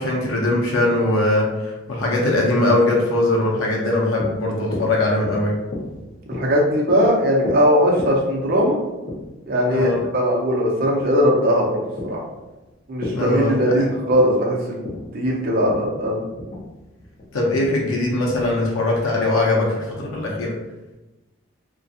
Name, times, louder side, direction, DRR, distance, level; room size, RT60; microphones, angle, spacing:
voice 1, 0.0-5.5 9.7-10.0 13.1-13.8 17.3-20.5, left 2 dB, 90° left, -2 dB, 0.5 m, -21 dB
sound 1, 4.1-18.4, left 1 dB, 40° left, 0.7 m, -36 dB
voice 2, 6.3-8.8 9.5-12.2 12.9-16.2, equal, 45° right, -3 dB, 0.6 m, -19 dB
2.4 x 2.2 x 2.6 m, 1.0 s
head